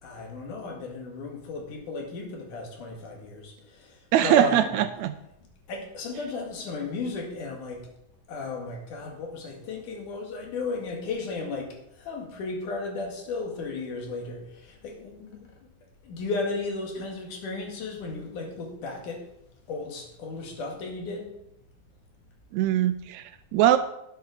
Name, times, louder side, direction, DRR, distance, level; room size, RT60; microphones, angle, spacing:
voice 1, 0.0-4.8 5.7-7.9 8.3-15.6 16.0-19.2 19.7-21.3, left 3 dB, 85° left, 2 dB, 3.5 m, -35 dB
voice 2, 4.1-5.1 22.5-23.8, right 11 dB, 80° right, 10 dB, 1.8 m, -22 dB
11.5 x 7.9 x 4.9 m, 0.81 s
omnidirectional pair, 3.5 m